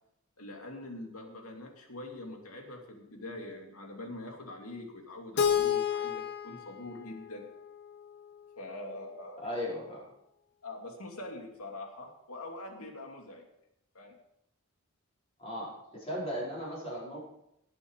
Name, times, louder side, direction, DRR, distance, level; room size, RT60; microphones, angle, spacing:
voice 1, 0.4-7.5 8.6-9.6 10.6-13.4 13.9-14.1, left 2 dB, 85° left, 2 dB, 2.6 m, -44 dB
Keyboard (musical), 5.4-8.3, left 8 dB, 50° left, 1.0 m, -31 dB
voice 2, 9.4-10.0 15.4-17.2, equal, 30° left, -6 dB, 5.0 m, -37 dB
18.0 x 7.8 x 4.8 m, 0.78 s
head